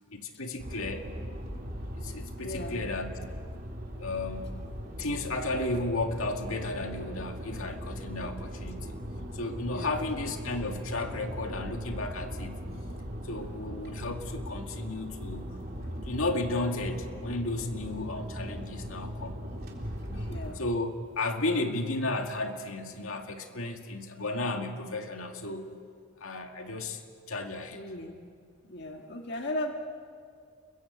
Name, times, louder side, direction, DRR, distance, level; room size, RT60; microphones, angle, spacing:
voice 1, 0.1-1.1 1.9-3.2 3.9-4.7 5.0-9.0 9.3-12.7 13.2-15.6 16.0-19.4 20.0-20.3 20.6-25.7 26.2-27.0 27.3-27.8, left 2 dB, 75° left, 4 dB, 2.1 m, -34 dB
sound 1, 0.6-20.5, equal, 45° right, 3.8 m, -39 dB
voice 2, 2.4-2.8 9.7-10.1 20.1-20.6 27.7-28.2 28.6-29.7, left 1 dB, 50° left, 3 dB, 1.7 m, -36 dB
29.5 x 22.0 x 8.2 m, 2.3 s
head